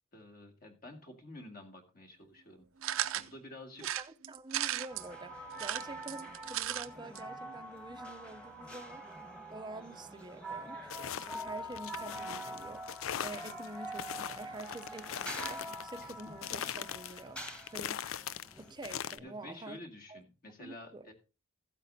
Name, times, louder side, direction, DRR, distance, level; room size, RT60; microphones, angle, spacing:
voice 1, 0.1-3.8 16.0-16.1 19.2-21.1, left 1 dB, 45° left, 2.2 m, -50 dB
sound 1, 2.8-3.3 3.8-5.1 5.5-6.9 7.2-7.3 7.5-7.6, right 12 dB, 85° right, 0.5 m, -35 dB
voice 2, 3.8-9.0 9.5-18.0 18.6-19.8 20.1-20.2 20.6-21.1, right 2 dB, 20° right, 0.5 m, -47 dB
sound 2, 4.9-18.7, right 1 dB, 5° left, 1.4 m, -45 dB
sound 3, 10.9-19.2, left 9 dB, 90° left, 0.4 m, -41 dB
15.0 x 8.4 x 2.7 m
head